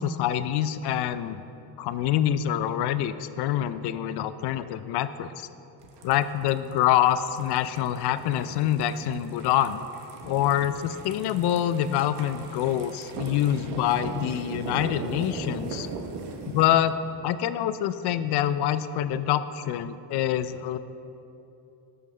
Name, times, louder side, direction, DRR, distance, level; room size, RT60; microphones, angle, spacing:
voice 1, 0.0-1.4 1.8-5.5 6.0-9.8 10.2-15.9 16.5-17.0 17.2-20.8, left 11 dB, 70° left, 13 dB, 0.5 m, -26 dB
sound 1, 5.8-16.6, right 4 dB, 75° right, 1.1 m, -39 dB
14.5 x 5.5 x 3.3 m, 2.8 s
cardioid pair, 140°, 42 cm